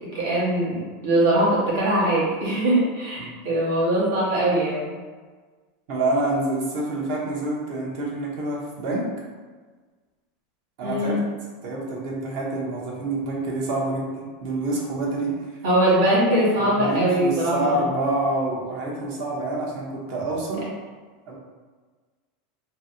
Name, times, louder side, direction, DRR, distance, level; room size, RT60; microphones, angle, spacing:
voice 1, 0.0-4.9 10.8-11.2 15.6-17.9, right 1 dB, 85° right, -6 dB, 1.3 m, -22 dB
voice 2, 5.9-9.1 10.8-11.1 11.6-15.3 16.6-20.6 21.3-21.4, right 2 dB, 60° right, -3 dB, 0.9 m, -27 dB
3.0 x 2.7 x 2.7 m, 1.4 s
supercardioid pair, 135°, 0 cm